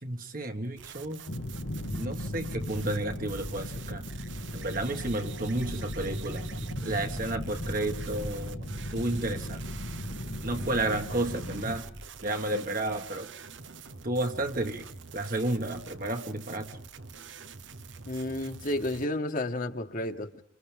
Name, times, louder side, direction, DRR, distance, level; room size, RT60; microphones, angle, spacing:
voice 1, 0.0-1.3 1.9-4.0 4.5-9.6 10.4-11.9 12.2-13.3 14.0-16.8, right 1 dB, 45° right, 5 dB, 1.8 m, -32 dB
sound 1, 0.8-19.1, right 6 dB, 70° right, 1.1 m, -46 dB
sound 2, 1.3-11.8, left 1 dB, 70° left, 1.6 m, -38 dB
sound 3, 5.6-12.1, right 1 dB, 25° right, 1.0 m, -41 dB
voice 2, 18.0-20.4, left 1 dB, 45° left, 5 dB, 1.6 m, -32 dB
29.0 x 29.0 x 3.6 m, 0.62 s
head